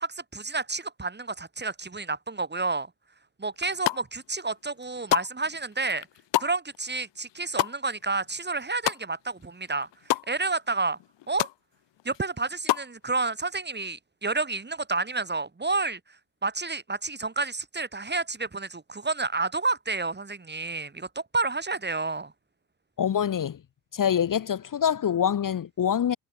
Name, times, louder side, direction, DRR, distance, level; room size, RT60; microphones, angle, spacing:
voice 1, 0.0-2.9 3.4-6.1 6.4-9.9 10.3-11.0 11.3-11.5 12.1-16.0 16.4-22.3, right 3 dB, 25° right, 2.0 m, -30 dB
sound 1, 3.5-4.3 4.6-9.4 9.7-10.3 10.7-10.8 11.0-11.6 12.0-12.9, left 16 dB, 70° left, 1.0 m, -29 dB
voice 2, 23.0-23.6 23.9-26.2, left 8 dB, 45° left, 1.0 m, -25 dB
hypercardioid pair, 45°, 44 cm